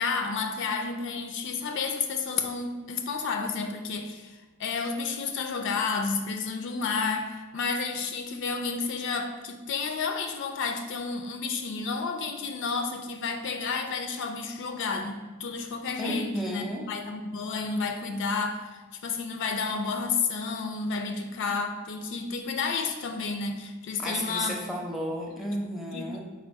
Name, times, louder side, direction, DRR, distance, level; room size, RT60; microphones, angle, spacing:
voice 1, 0.0-24.5 25.4-25.5 25.9-26.2, left 4 dB, 60° left, 6 dB, 0.3 m, -31 dB
voice 2, 16.0-16.9 24.0-26.2, equal, ahead, -1 dB, 0.5 m, -32 dB
4.3 x 2.3 x 4.5 m, 1.2 s
head